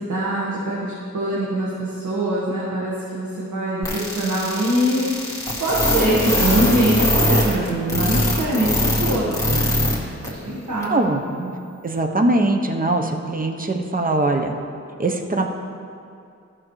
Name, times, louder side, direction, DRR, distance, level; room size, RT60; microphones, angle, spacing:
voice 1, 0.0-9.9 10.2-10.9 11.3-11.5, right 1 dB, 85° right, -7 dB, 1.5 m, -23 dB
sound 1, 3.8-10.0 10.2-10.3 10.8-10.9, left 1 dB, 10° left, 1.8 m, -21 dB
voice 2, 10.9-11.2 11.8-14.5 15.0-15.5, right 2 dB, 30° right, 4 dB, 0.8 m, -21 dB
13.5 x 6.1 x 3.2 m, 2.5 s
wide cardioid pair, 80°, 29 cm